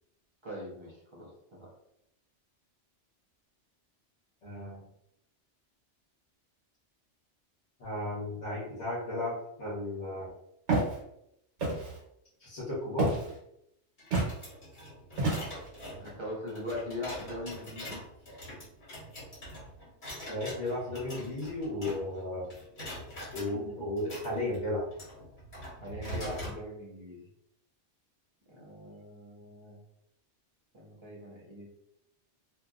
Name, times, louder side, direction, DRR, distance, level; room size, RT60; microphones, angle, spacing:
voice 1, 0.4-1.7 16.0-18.0 25.8-27.3 28.5-29.8 30.7-31.7, left 1 dB, 30° right, -5 dB, 0.7 m, -41 dB
voice 2, 4.4-4.8 7.8-10.3 12.4-13.1 20.3-22.5 23.3-24.9, left 1 dB, 80° left, -8 dB, 1.2 m, -34 dB
Walk footsteps, 10.7-10.9 11.6-12.0 13.0-13.3 14.1-14.3 15.2-15.7, right 2 dB, 75° right, 1.3 m, -28 dB
sound 1, 14.0-22.2 22.5-23.5 24.0-26.6, equal, 45° left, 1.4 m, -43 dB
2.8 x 2.7 x 2.3 m, 0.78 s
omnidirectional pair, 1.2 m